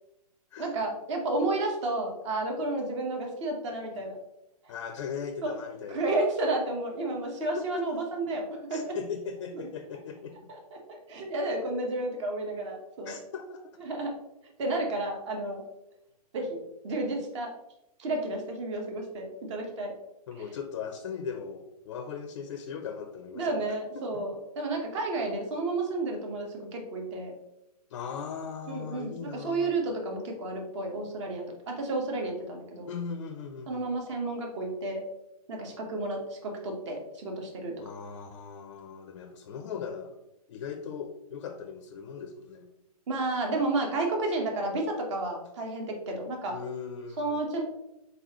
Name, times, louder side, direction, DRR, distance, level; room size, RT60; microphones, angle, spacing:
voice 1, 0.6-4.2 5.4-5.5 5.9-8.4 8.7-9.0 9.5-9.7 10.5-13.2 13.8-14.1 14.6-15.6 16.3-16.6 16.8-17.5 18.0-19.9 23.3-27.3 28.7-32.9 33.7-35.0 35.5-37.7 43.1-46.6 47.2-47.6, right 2 dB, 45° right, 2 dB, 1.2 m, -31 dB
voice 2, 4.7-6.0 7.4-7.9 8.7-10.5 13.0-13.8 20.3-23.7 23.9-24.2 27.9-29.7 32.9-33.8 37.8-40.2 40.5-42.7 46.5-47.4, left 6 dB, 45° left, 7 dB, 0.4 m, -39 dB
4.0 x 3.8 x 2.9 m, 0.88 s
hypercardioid pair, 130°, 20 cm